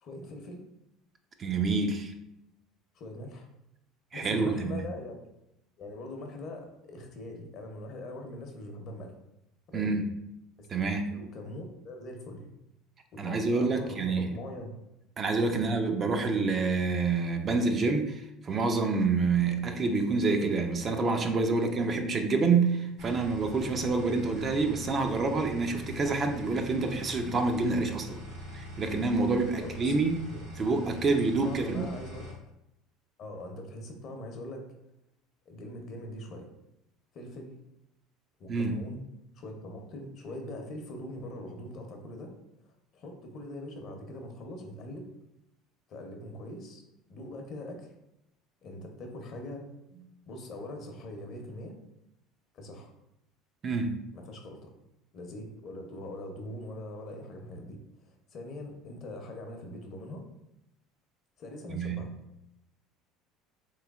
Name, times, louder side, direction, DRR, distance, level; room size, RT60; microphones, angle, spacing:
voice 1, 0.0-0.6 2.9-3.5 4.1-5.3 5.8-9.1 9.7-10.0 10.6-10.7 11.1-12.5 13.1-14.7 15.5-15.7 29.6-30.7 31.4-32.4 33.2-34.7 35.5-36.5 37.1-37.6 38.4-39.0 39.4-42.3 42.9-45.1 45.9-46.8 47.1-47.9 48.6-49.7 50.3-51.8 52.5-52.9 54.1-54.7 55.1-57.8 58.1-60.2 61.4-62.1, left 1 dB, 55° left, 3 dB, 0.7 m, -42 dB
voice 2, 1.4-2.1 4.1-4.8 9.7-10.1 10.7-11.1 13.2-14.3 15.2-28.2 28.5-30.2 30.6-31.9 38.5-38.8 53.6-54.0 61.7-62.0, right 3 dB, 35° right, 5 dB, 0.4 m, -27 dB
sound 1, 23.0-32.3, equal, 80° right, 1.3 m, -43 dB
3.3 x 3.1 x 2.3 m, 0.84 s
supercardioid pair, 90°, 0 cm